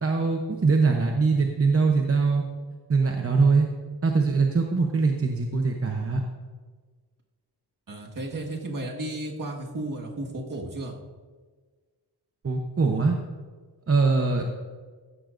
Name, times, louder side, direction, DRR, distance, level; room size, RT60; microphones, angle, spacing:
voice 1, 0.0-2.4 2.9-3.7 4.0-6.2 12.4-13.1 13.9-14.4, right 4 dB, 35° right, 2 dB, 0.8 m, -22 dB
voice 2, 7.9-11.0 14.4-14.5, right 1 dB, 50° right, 0 dB, 1.7 m, -34 dB
15.0 x 12.0 x 2.6 m, 1.4 s
wide cardioid pair, 165°, 41 cm